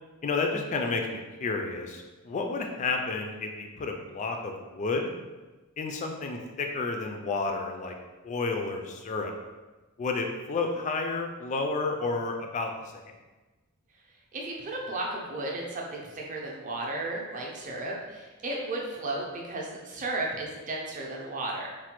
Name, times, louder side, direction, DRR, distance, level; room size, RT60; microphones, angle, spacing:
voice 1, 0.2-5.1 5.8-7.9 8.2-9.3 10.0-12.7, left 3 dB, 35° left, 3 dB, 0.3 m, -31 dB
voice 2, 14.3-21.7, right 2 dB, 35° right, -2 dB, 0.5 m, -34 dB
3.2 x 2.2 x 2.9 m, 1.2 s
head